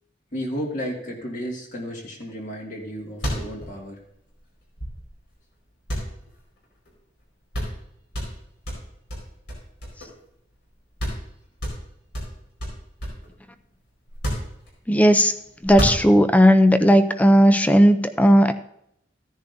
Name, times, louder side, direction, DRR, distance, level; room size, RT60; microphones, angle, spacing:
voice 1, 0.3-4.0, equal, 45° left, -1 dB, 1.9 m, -33 dB
sound 1, 2.8-2.9 3.1-5.3 5.9-6.9 7.2-7.3 7.5-7.8 8.1-10.3 10.6-10.7 11.0-11.3 11.6-13.3 14.1-15.0 15.6-16.4, equal, 65° left, 4.7 m, -30 dB
voice 2, 14.9-15.3 15.6-18.5, equal, 10° left, 10 dB, 0.4 m, -15 dB
14.5 x 10.0 x 2.6 m, 0.75 s
head